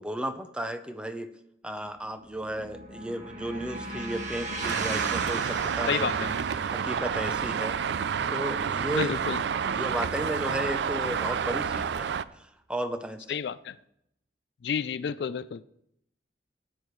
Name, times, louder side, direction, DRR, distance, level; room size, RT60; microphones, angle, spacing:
voice 1, 0.0-1.3 1.6-6.3 6.7-7.8 8.3-9.2 9.6-13.3, right 1 dB, 5° right, 9 dB, 0.6 m, -34 dB
sound 1, 2.0-10.1, right 2 dB, 40° right, 1.6 m, -40 dB
Traffic noise roadway noise, 4.6-12.2, right 7 dB, 70° right, 0.4 m, -29 dB
voice 2, 5.9-6.3 8.9-9.4 13.3-13.8 14.6-15.6, left 7 dB, 65° left, 16 dB, 0.3 m, -30 dB
15.0 x 10.0 x 3.2 m, 0.78 s
head